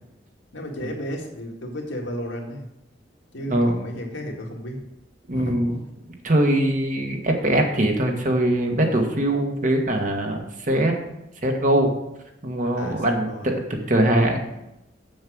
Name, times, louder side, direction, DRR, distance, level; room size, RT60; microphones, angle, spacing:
voice 1, 0.5-2.7 3.3-4.8 5.3-5.6 12.7-13.5, equal, 75° left, 1 dB, 1.9 m, -33 dB
voice 2, 5.3-5.8 6.2-10.9 11.4-11.9 12.4-14.4, right 1 dB, 40° right, 2 dB, 1.6 m, -22 dB
7.5 x 7.3 x 6.3 m, 0.89 s
head